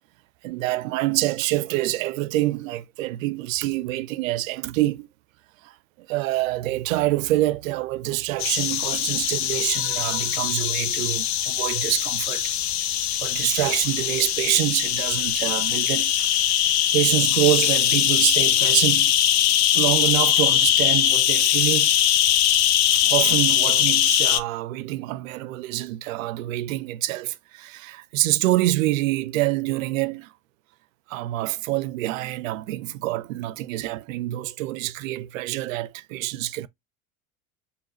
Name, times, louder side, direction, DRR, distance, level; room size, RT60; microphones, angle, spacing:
voice 1, 0.4-5.1 5.6-5.7 6.0-12.5 13.2-16.1 16.9-19.1 19.7-21.9 22.9-30.3 31.1-36.7, right 17 dB, 65° right, 0.5 m, -26 dB
sound 1, 8.4-24.4, left 11 dB, 40° left, 0.5 m, -21 dB
5.4 x 2.3 x 2.9 m
figure-of-eight pair, 75°, 44 cm